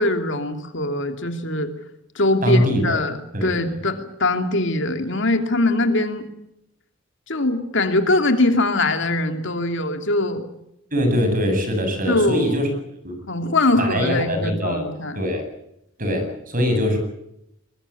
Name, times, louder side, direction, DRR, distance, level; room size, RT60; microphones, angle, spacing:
voice 1, 0.0-1.7 2.1-6.2 7.3-10.4 12.1-12.5 13.3-15.2, left 2 dB, 65° left, 6 dB, 2.9 m, -22 dB
voice 2, 2.4-3.0 3.3-3.5 10.9-12.7 13.0-13.2 13.7-14.9 15.1-15.4 16.0-17.0, equal, 45° right, 7 dB, 7.6 m, -22 dB
22.0 x 22.0 x 8.6 m, 0.81 s
head